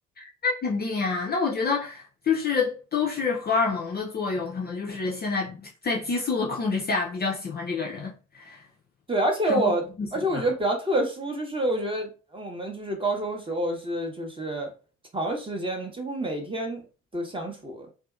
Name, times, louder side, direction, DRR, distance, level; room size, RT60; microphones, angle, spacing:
voice 1, 0.2-8.6 9.5-9.7 10.0-10.5, left 4 dB, 25° left, 0.5 m, -28 dB
voice 2, 9.1-9.8 10.1-14.7 15.1-16.8 17.1-17.9, right 1 dB, 15° right, 0.7 m, -28 dB
2.6 x 2.3 x 2.4 m
figure-of-eight pair, 50°, 39 cm